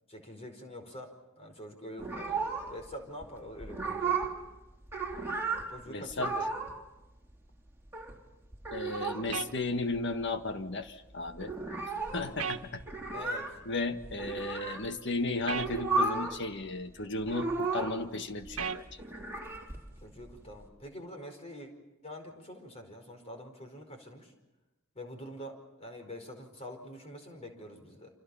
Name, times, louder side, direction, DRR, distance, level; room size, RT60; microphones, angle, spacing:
voice 1, 0.1-4.1 5.7-6.5 12.1-12.4 13.1-13.5 20.0-21.7 22.0-24.3 24.9-28.1, equal, 30° left, 5 dB, 4.9 m, -45 dB
sound 1, 2.0-2.9 3.2-3.3 3.6-4.4 4.7-5.7 6.1-6.8 7.0-7.1 7.3-8.2 8.5-9.3 9.6-9.7 9.9-10.5 10.8-10.9 11.1-14.9 15.4-16.4 16.7-18.1 18.4-20.7, right 3 dB, 10° right, 3.5 m, -34 dB
voice 2, 5.9-6.3 8.7-11.5 12.1-12.8 13.6-18.8, left 2 dB, 60° left, 8 dB, 1.6 m, -34 dB
sound 2, 9.3-9.5 12.4-12.6 15.5-15.7 18.6-18.8, right 6 dB, 85° right, 1.4 m, -34 dB
29.5 x 27.0 x 5.7 m, 0.98 s
head